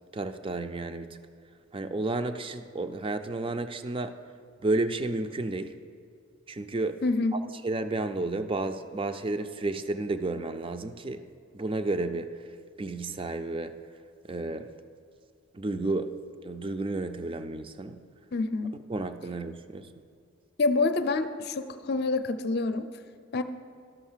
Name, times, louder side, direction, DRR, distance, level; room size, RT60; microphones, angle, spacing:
voice 1, 0.1-1.1 1.7-4.1 4.6-5.7 6.5-7.0 7.6-11.2 11.5-12.3 12.8-13.8 14.3-14.7 15.5-16.1 16.4-18.0 18.9-19.8, right 2 dB, 25° right, 9 dB, 0.5 m, -31 dB
voice 2, 7.0-7.4 18.3-18.7 20.6-22.9 23.3-23.4, left 3 dB, 50° left, 10 dB, 0.6 m, -27 dB
12.0 x 6.3 x 7.4 m, 2.3 s
head